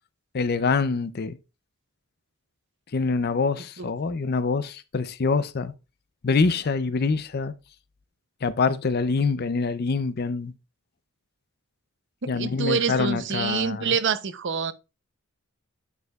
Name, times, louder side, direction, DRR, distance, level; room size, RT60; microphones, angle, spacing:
voice 1, 0.3-1.4 2.9-5.7 6.2-7.5 8.4-10.5 12.3-14.0, left 4 dB, 45° left, 0.5 m, -25 dB
voice 2, 12.2-14.7, right 6 dB, 55° right, 0.6 m, -26 dB
9.4 x 6.4 x 2.3 m
head